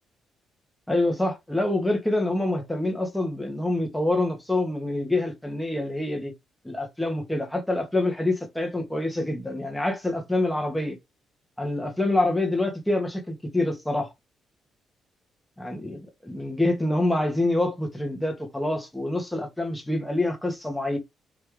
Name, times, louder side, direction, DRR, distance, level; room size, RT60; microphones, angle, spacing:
voice 1, 0.9-6.3 6.6-11.0 11.6-14.1 15.6-21.0, left 2 dB, 5° left, 1.3 m, -26 dB
3.3 x 3.3 x 3.2 m
cardioid pair, 90°, 0 cm